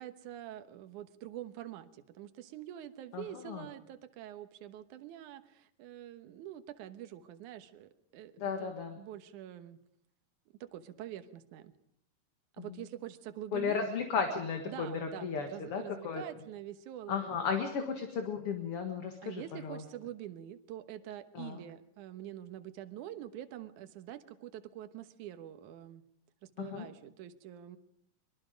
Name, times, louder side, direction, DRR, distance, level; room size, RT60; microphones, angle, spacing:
voice 1, 0.0-9.8 10.6-11.7 12.6-13.8 14.7-17.3 19.2-26.0 26.4-27.8, right 12 dB, 70° right, 10 dB, 2.5 m, -46 dB
voice 2, 3.1-3.7 8.4-9.0 12.6-12.8 13.5-16.2 17.1-19.8 21.3-21.6 26.6-26.9, left 6 dB, 50° left, 5 dB, 2.2 m, -35 dB
23.5 x 23.5 x 5.2 m, 0.73 s
omnidirectional pair, 3.9 m